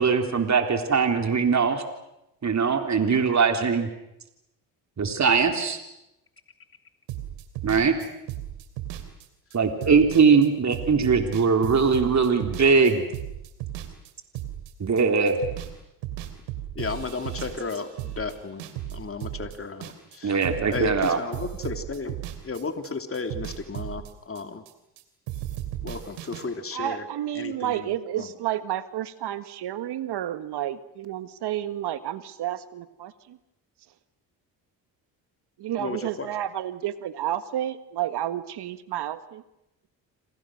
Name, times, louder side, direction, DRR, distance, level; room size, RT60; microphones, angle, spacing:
voice 1, 0.0-1.8 2.4-3.9 5.0-5.8 7.6-8.0 9.5-13.1 14.8-15.4 20.2-21.2, right 5 dB, 40° right, 5 dB, 3.6 m, -21 dB
sound 1, 7.1-15.8 16.0-20.2 20.4-25.0 25.3-26.4, right 12 dB, 90° right, 3.1 m, -35 dB
voice 2, 16.7-18.6 18.9-20.4 20.7-22.2 22.4-24.6 25.8-27.1 27.3-28.3 35.8-36.3, left 4 dB, 30° left, 6 dB, 2.9 m, -34 dB
voice 3, 26.7-33.4 35.6-39.4, right 12 dB, 70° right, 12 dB, 1.7 m, -31 dB
28.0 x 27.5 x 6.4 m, 0.88 s
supercardioid pair, 65°, 41 cm